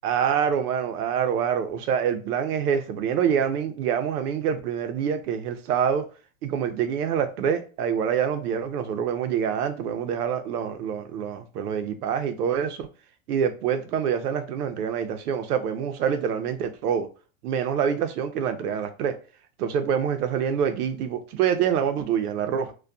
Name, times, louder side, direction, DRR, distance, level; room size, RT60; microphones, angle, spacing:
voice 1, 0.0-6.0 6.4-12.9 13.3-17.1 17.4-19.1 19.6-22.7, right 8 dB, 85° right, 0.6 m, -26 dB
2.5 x 2.2 x 2.2 m
supercardioid pair, 165°, 44 cm